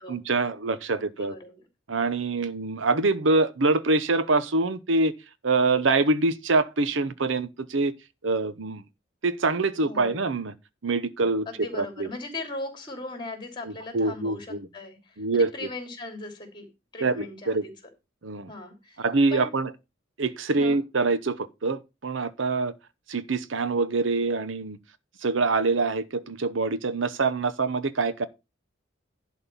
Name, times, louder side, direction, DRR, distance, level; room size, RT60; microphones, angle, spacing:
voice 1, 0.1-1.4 1.9-5.1 5.4-7.9 8.2-8.8 9.2-10.5 10.8-12.1 13.6-14.7 15.2-15.5 17.0-17.6 18.2-18.5 19.0-19.7 20.2-22.7 23.1-24.8 25.2-28.3, right 3 dB, 75° right, 0.8 m, -25 dB
voice 2, 0.9-1.6 9.8-10.2 11.4-16.7 16.9-17.7 18.5-19.0 19.3-19.5 20.5-20.8, left 2 dB, 25° left, 3.1 m, -39 dB
11.5 x 4.3 x 6.8 m
head